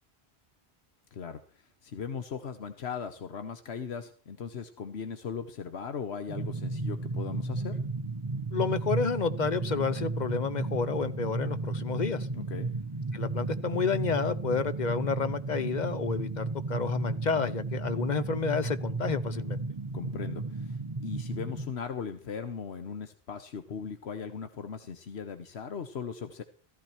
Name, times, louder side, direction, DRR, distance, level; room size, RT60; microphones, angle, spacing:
voice 1, 1.8-7.8 12.3-12.7 19.9-26.4, left 6 dB, 80° left, 9 dB, 1.3 m, -38 dB
sound 1, 6.3-21.7, right 3 dB, 30° right, 0.8 m, -34 dB
voice 2, 8.5-12.3 13.1-19.6, left 5 dB, 45° left, 12 dB, 1.0 m, -30 dB
15.0 x 14.0 x 4.4 m, 0.40 s
omnidirectional pair, 1.1 m